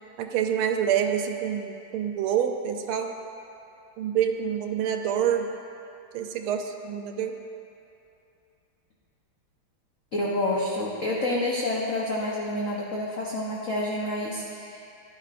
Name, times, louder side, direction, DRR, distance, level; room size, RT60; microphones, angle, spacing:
voice 1, 0.2-3.2 4.0-5.5 6.1-7.3, right 8 dB, 85° right, 5 dB, 1.5 m, -27 dB
voice 2, 10.1-14.8, left 1 dB, 50° left, -4 dB, 1.0 m, -28 dB
14.0 x 9.9 x 2.5 m, 2.6 s
omnidirectional pair, 2.3 m